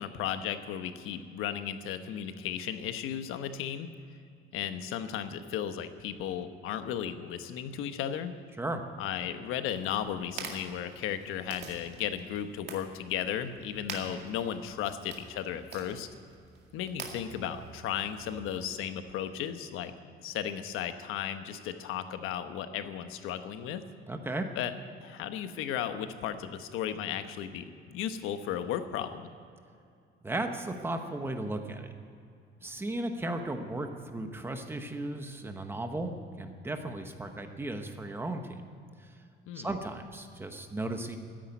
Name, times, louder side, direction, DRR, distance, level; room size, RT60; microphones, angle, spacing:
voice 1, 0.0-3.9 4.5-8.3 9.0-16.1 16.7-23.8 24.5-24.7 25.0-29.3 39.5-39.7, left 9 dB, 80° left, 9 dB, 1.1 m, -35 dB
sound 1, 9.7-18.7, right 5 dB, 55° right, 2.1 m, -47 dB
voice 2, 24.1-24.5 30.2-31.9 32.6-38.6 39.0-39.1 39.5-41.2, right 2 dB, 10° right, 6 dB, 1.0 m, -35 dB
14.0 x 10.5 x 9.5 m, 2.4 s
cardioid pair, 175°, 21 cm